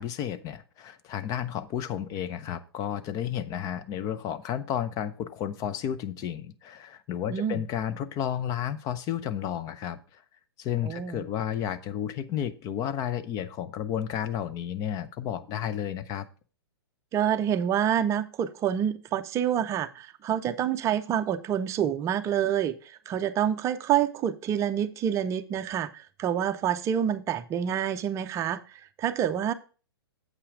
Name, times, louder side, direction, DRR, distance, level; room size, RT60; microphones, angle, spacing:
voice 1, 0.0-10.2 10.6-16.3, left 10 dB, 30° left, 0.6 m, -32 dB
voice 2, 7.3-7.6 10.8-11.2 17.1-29.5, right 9 dB, 20° right, 0.6 m, -27 dB
8.1 x 5.6 x 4.9 m
hypercardioid pair, 120°, 13 cm